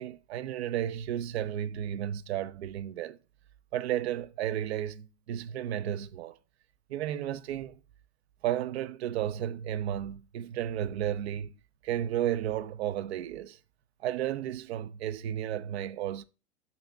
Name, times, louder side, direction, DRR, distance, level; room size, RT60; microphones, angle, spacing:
voice 1, 0.0-3.2 3.7-6.4 6.9-7.8 8.4-11.5 11.8-13.6 14.0-16.2, right 11 dB, 65° right, 0.7 m, -33 dB
6.8 x 2.8 x 5.5 m
hypercardioid pair, 95°, 35 cm